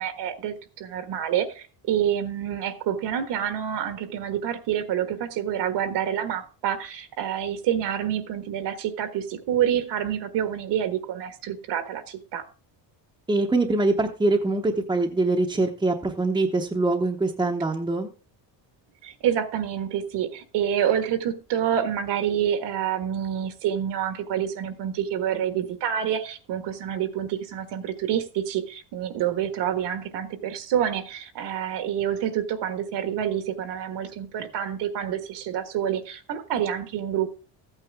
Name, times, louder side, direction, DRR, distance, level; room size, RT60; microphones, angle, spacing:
voice 1, 0.0-12.4 19.0-37.4, right 9 dB, 65° right, 1.5 m, -27 dB
voice 2, 13.3-18.1, right 2 dB, 10° right, 0.8 m, -23 dB
14.5 x 8.9 x 3.5 m
cardioid pair, 165°, 44 cm